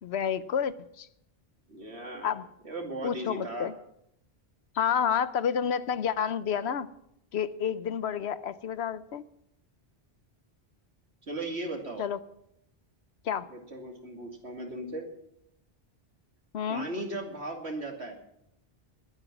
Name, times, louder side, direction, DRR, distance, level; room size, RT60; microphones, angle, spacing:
voice 1, 0.0-1.1 2.2-2.5 3.0-3.7 4.7-6.9 7.3-9.2 12.0-12.2 13.2-13.5 16.5-16.9, left 8 dB, 80° left, 15 dB, 1.0 m, -29 dB
voice 2, 1.7-2.4 2.6-3.7 11.3-12.0 13.5-15.1 16.7-18.2, right 2 dB, 85° right, 2 dB, 2.9 m, -37 dB
21.0 x 9.0 x 6.1 m, 0.77 s
omnidirectional pair, 1.1 m